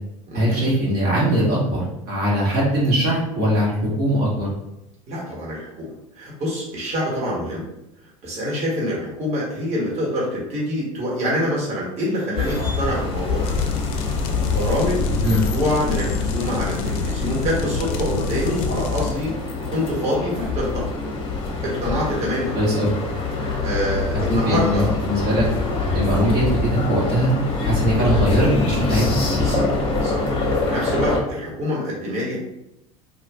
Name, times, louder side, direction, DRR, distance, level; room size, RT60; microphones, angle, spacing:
voice 1, 0.3-4.5 15.2-15.4 22.5-22.9 24.3-25.4 25.9-27.3 27.6-29.0, equal, 60° right, -6 dB, 1.2 m, -21 dB
voice 2, 5.1-7.7 8.2-13.6 14.5-20.9 21.6-22.6 23.4-24.9 28.0-28.1 29.3-32.4, equal, 40° right, -5 dB, 1.2 m, -26 dB
sound 1, 12.4-31.2, left 3 dB, 30° left, 0.8 m, -25 dB
sound 2, 13.4-19.1, left 4 dB, 60° left, 0.4 m, -27 dB
2.4 x 2.4 x 3.4 m, 0.85 s
hypercardioid pair, 80°, 17 cm